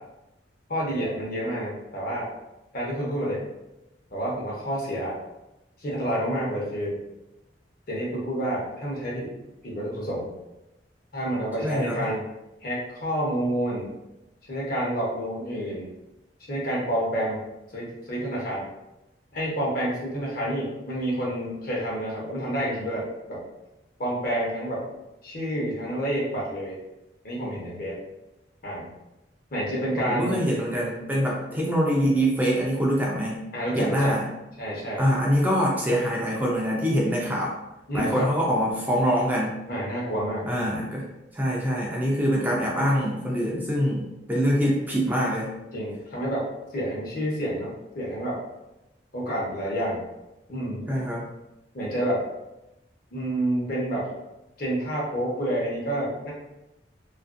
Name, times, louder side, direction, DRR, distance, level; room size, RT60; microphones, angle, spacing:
voice 1, 0.7-2.3 2.7-3.4 4.1-5.2 5.8-7.0 7.9-9.3 9.6-10.3 11.1-12.2 12.6-13.9 14.5-15.9 16.5-17.4 17.7-18.7 19.3-23.4 24.0-24.8 25.2-26.8 27.2-28.0 28.6-28.9 29.5-30.5 33.5-34.2 34.6-35.1 37.9-38.3 39.7-40.8 45.7-46.5 46.7-48.4 49.1-50.0 50.5-50.8 51.7-52.2 53.1-54.1 54.6-56.3, right 1 dB, 50° left, -4 dB, 0.9 m, -29 dB
voice 2, 11.6-12.0 30.1-33.4 33.7-34.2 35.0-37.5 37.9-39.6 40.5-41.1 41.3-45.5 50.9-51.3, equal, 10° right, -4 dB, 0.4 m, -24 dB
2.8 x 2.5 x 2.5 m, 0.93 s
head